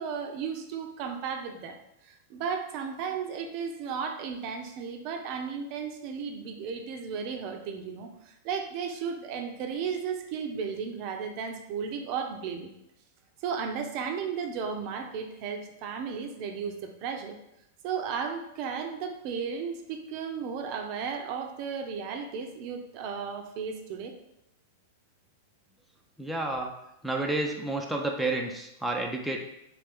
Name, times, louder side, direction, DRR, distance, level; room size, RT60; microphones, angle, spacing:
voice 1, 0.0-1.8 2.0-12.7 13.4-17.4 17.8-24.1, right 6 dB, 50° right, 4 dB, 0.5 m, -34 dB
voice 2, 26.2-26.7 27.0-29.4, right 2 dB, 5° right, 0 dB, 0.5 m, -30 dB
3.3 x 3.2 x 3.5 m, 0.83 s
hypercardioid pair, 120°, 0 cm